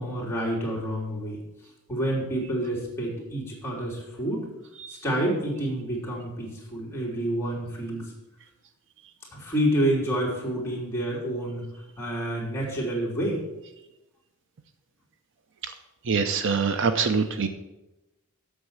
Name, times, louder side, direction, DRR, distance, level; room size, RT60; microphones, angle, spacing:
voice 1, 0.0-1.4 1.9-4.4 4.9-8.0 9.3-11.6 12.0-13.4, right 1 dB, 10° left, -5 dB, 3.2 m, -28 dB
voice 2, 16.1-17.5, right 5 dB, 60° right, 9 dB, 0.6 m, -24 dB
8.0 x 6.4 x 7.1 m, 0.97 s
head